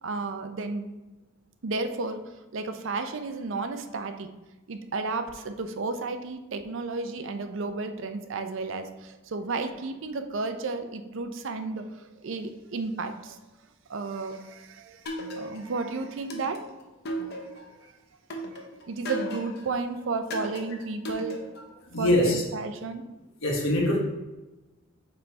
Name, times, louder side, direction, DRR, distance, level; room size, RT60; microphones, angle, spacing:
voice 1, 0.0-0.9 1.6-2.2 2.5-4.3 4.7-13.4 13.9-16.7 17.8-17.9 18.5-21.4 22.0-23.0, right 3 dB, 65° right, 7 dB, 0.5 m, -33 dB
sound 1, 15.1-15.8 16.3-17.8 18.3-19.7 20.3-21.7, right 1 dB, 55° left, 0.9 m, -36 dB
voice 2, 21.9-22.4 23.4-24.0, left 1 dB, 75° left, -2 dB, 1.4 m, -23 dB
5.5 x 4.1 x 4.3 m, 1.1 s
head